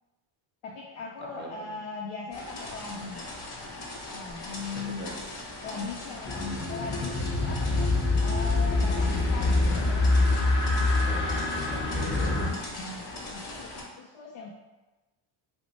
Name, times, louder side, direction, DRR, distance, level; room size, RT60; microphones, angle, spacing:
voice 1, 0.6-3.2 4.1-5.3 5.6-10.0 12.8-14.5, left 4 dB, 70° left, -2 dB, 0.6 m, -39 dB
voice 2, 1.2-1.8 4.6-5.1 9.7-9.9 11.1-12.5, right 1 dB, 25° right, -2 dB, 0.6 m, -41 dB
sound 1, 2.3-13.8, left 2 dB, 50° left, 1.0 m, -40 dB
sound 2, 6.2-12.5, left 2 dB, 25° left, 0.7 m, -25 dB
2.9 x 2.1 x 4.0 m, 1.1 s
cardioid pair, 115°, 47 cm